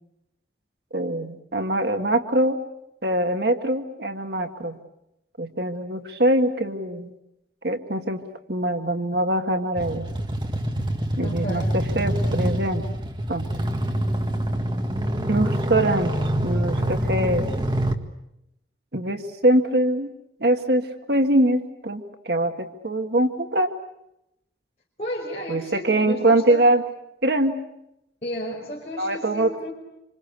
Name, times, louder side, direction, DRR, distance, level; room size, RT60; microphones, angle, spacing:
voice 1, 0.9-2.6 3.0-4.8 5.4-7.1 7.6-8.2 8.5-10.1 11.2-13.0 13.3-13.5 15.3-16.2 16.4-17.5 18.9-20.1 20.4-23.7 25.5-26.8 27.2-27.6 29.0-29.7, right 1 dB, 60° right, 6 dB, 1.8 m, -23 dB
sound 1, 9.8-18.0, right 1 dB, 25° right, 1.7 m, -26 dB
voice 2, 11.2-11.8 25.0-26.7 28.2-29.7, equal, 35° left, -4 dB, 5.4 m, -33 dB
27.0 x 26.0 x 8.4 m, 0.86 s
head